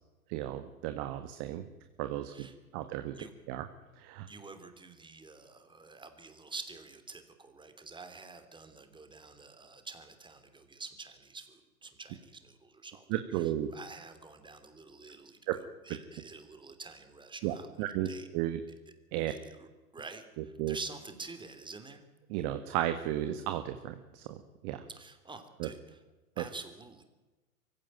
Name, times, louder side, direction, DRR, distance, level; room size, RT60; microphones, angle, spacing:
voice 1, 0.3-1.7 2.0-2.5 2.7-3.2 3.5-3.6 4.0-4.3 13.1-13.7 15.5-15.6 17.4-18.6 19.1-19.3 20.6-20.8 22.3-24.8 25.6-25.7 26.4-26.5, right 13 dB, 45° right, 8 dB, 1.7 m, -34 dB
voice 2, 4.3-13.0 13.3-17.7 18.0-18.3 19.3-19.7 19.9-22.1 24.9-26.0 26.4-27.0, right 4 dB, 10° right, 8 dB, 3.0 m, -48 dB
23.5 x 16.0 x 9.2 m, 1.2 s
hypercardioid pair, 105°, 45 cm